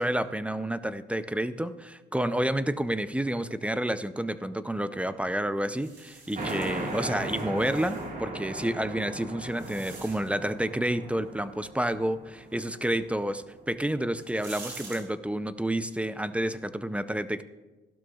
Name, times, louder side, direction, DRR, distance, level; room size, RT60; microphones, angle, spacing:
voice 1, 0.0-17.4, right 1 dB, 5° right, 12 dB, 0.5 m, -30 dB
sound 1, 5.8-8.1 8.9-10.5 13.5-13.6 14.1-15.0, right 4 dB, 60° right, 3.1 m, -47 dB
sound 2, 6.4-13.5, right 2 dB, 45° right, 1.9 m, -37 dB
15.5 x 12.0 x 2.4 m, 1.2 s
cardioid pair, 90°, 20 cm